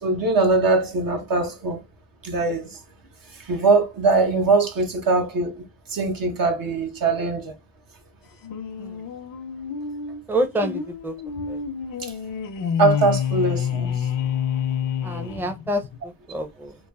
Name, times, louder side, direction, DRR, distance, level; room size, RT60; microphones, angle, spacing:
voice 1, 0.0-1.8 2.2-2.8 3.3-7.5 12.0-12.1 12.8-14.0, right 3 dB, 70° right, 1.0 m, -22 dB
sound 1, 8.4-16.0, left 8 dB, 70° left, 0.5 m, -28 dB
voice 2, 10.3-11.1 11.5-11.6 15.0-15.8 16.3-16.7, right 1 dB, 5° right, 0.5 m, -27 dB
3.0 x 2.1 x 2.3 m
cardioid pair, 50°, 36 cm